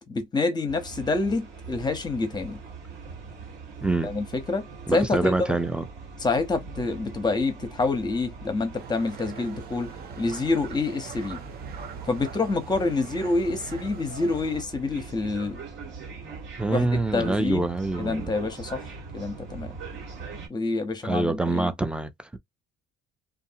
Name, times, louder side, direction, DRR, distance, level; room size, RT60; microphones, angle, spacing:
voice 1, 0.1-2.6 4.0-5.6 6.2-11.4 12.1-15.6 16.7-17.7 18.0-18.9 19.1-19.7 20.5-21.7, left 3 dB, 20° left, 0.8 m, -27 dB
sound 1, 0.7-20.5, right 4 dB, 65° right, 1.5 m, -41 dB
voice 2, 3.8-4.1 4.9-5.9 16.2-18.3 21.0-22.4, right 2 dB, 5° right, 0.4 m, -26 dB
sound 2, 8.7-14.6, right 7 dB, 50° right, 0.6 m, -43 dB
2.6 x 2.4 x 2.6 m
cardioid pair, 130°, 20 cm